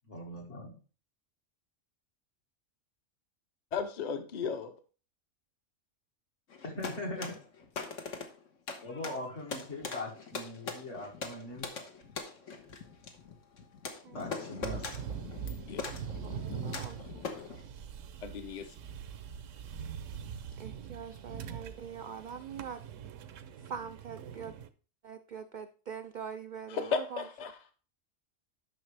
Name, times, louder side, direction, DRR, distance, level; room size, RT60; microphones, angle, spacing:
voice 1, 0.1-0.8 6.6-7.3 8.8-11.7 14.1-14.9, left 1 dB, 70° left, 2.2 m, -40 dB
voice 2, 3.7-4.7 15.7-15.9 18.2-18.7 26.7-27.5, left 6 dB, 40° left, 0.8 m, -34 dB
sound 1, 6.5-17.6, left 4 dB, 85° left, 1.5 m, -42 dB
sound 2, 14.6-24.7, right 8 dB, 85° right, 1.0 m, -43 dB
voice 3, 16.2-17.2 20.6-22.8 23.7-24.6 25.0-27.3, right 7 dB, 65° right, 0.4 m, -43 dB
9.9 x 6.2 x 3.3 m
omnidirectional pair, 1.3 m